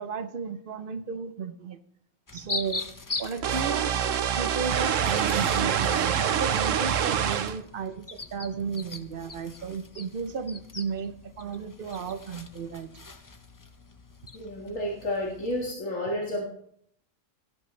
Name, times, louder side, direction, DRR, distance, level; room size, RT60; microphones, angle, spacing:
voice 1, 0.0-1.8 2.3-2.8 3.2-4.0 4.4-12.9, right 6 dB, 50° right, 10 dB, 0.9 m, -34 dB
sound 1, 2.3-15.7, left 3 dB, 25° left, 0.4 m, -41 dB
sound 2, 3.4-7.6, right 8 dB, 80° right, 1.1 m, -25 dB
voice 2, 14.3-16.4, left 1 dB, 85° left, -3 dB, 2.3 m, -31 dB
16.5 x 10.5 x 3.3 m, 0.69 s
omnidirectional pair, 1.3 m